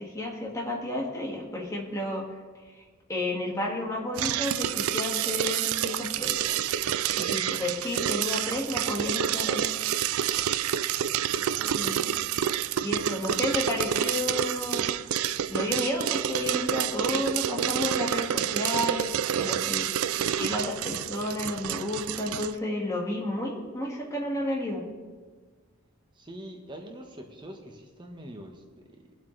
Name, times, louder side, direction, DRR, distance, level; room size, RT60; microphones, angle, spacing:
voice 1, 0.0-2.2 3.1-6.5 7.1-9.6 11.7-12.1 12.8-14.9 15.5-20.1 20.4-24.8, left 1 dB, 15° left, -2 dB, 2.0 m, -31 dB
sound 1, 4.2-22.5, right 10 dB, 75° right, 0.4 m, -28 dB
voice 2, 11.4-12.0 19.3-19.8 26.1-29.2, right 1 dB, 20° right, 2 dB, 1.3 m, -44 dB
22.0 x 8.1 x 3.4 m, 1.4 s
head